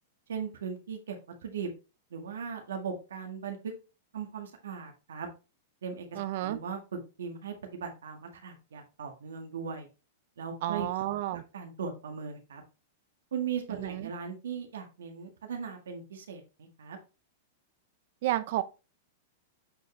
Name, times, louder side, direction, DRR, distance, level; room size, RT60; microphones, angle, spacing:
voice 1, 0.3-1.2 1.4-1.7 2.1-3.7 4.1-5.3 5.8-6.0 6.4-6.8 7.2-9.9 10.4-10.9 11.5-12.6 13.3-17.0, right 6 dB, 85° right, 1.8 m, -38 dB
voice 2, 6.2-6.6 10.6-11.4 13.7-14.1 18.2-18.6, right 14 dB, 60° right, 0.8 m, -31 dB
7.8 x 4.5 x 3.3 m
hypercardioid pair, 120°, 0 cm